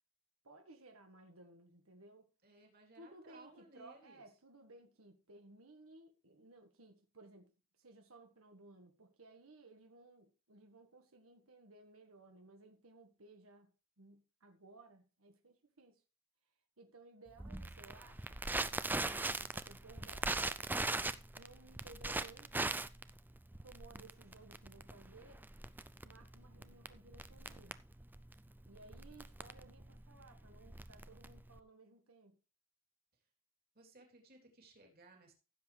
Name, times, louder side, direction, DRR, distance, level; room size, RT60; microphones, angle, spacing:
voice 1, 0.4-2.3 3.0-7.5 7.8-16.0 16.8-18.6 19.0-20.7 21.3-22.8 23.6-25.4 26.0-27.8 28.7-32.4, right 2 dB, 85° right, 1.6 m, -59 dB
voice 2, 2.4-4.2 33.7-35.3, right 2 dB, 45° right, 3.3 m, -60 dB
Crackle, 17.4-31.6, right 2 dB, 10° right, 0.4 m, -40 dB
15.5 x 7.6 x 3.3 m
head